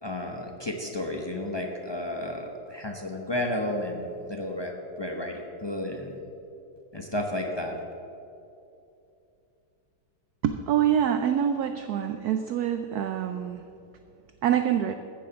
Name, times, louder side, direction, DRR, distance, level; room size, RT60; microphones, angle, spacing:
voice 1, 0.0-4.7 5.0-6.1 6.9-7.8, left 1 dB, 35° left, 1 dB, 0.4 m, -32 dB
voice 2, 10.4-13.6 14.4-15.0, right 9 dB, 70° right, 8 dB, 0.9 m, -25 dB
14.5 x 7.3 x 7.0 m, 2.8 s
omnidirectional pair, 2.2 m